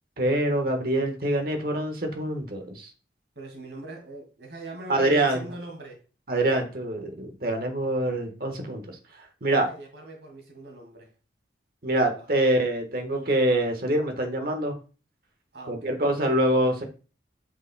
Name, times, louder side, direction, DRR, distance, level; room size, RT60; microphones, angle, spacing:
voice 1, 0.2-2.9 4.9-5.4 6.3-8.8 9.4-9.7 11.8-14.8 15.7-16.8, right 1 dB, 50° right, 5 dB, 1.3 m, -25 dB
voice 2, 3.4-6.0 9.7-11.1 12.1-12.5 15.5-16.4, right 2 dB, 75° right, 1 dB, 2.2 m, -42 dB
8.5 x 5.3 x 2.2 m, 0.34 s
head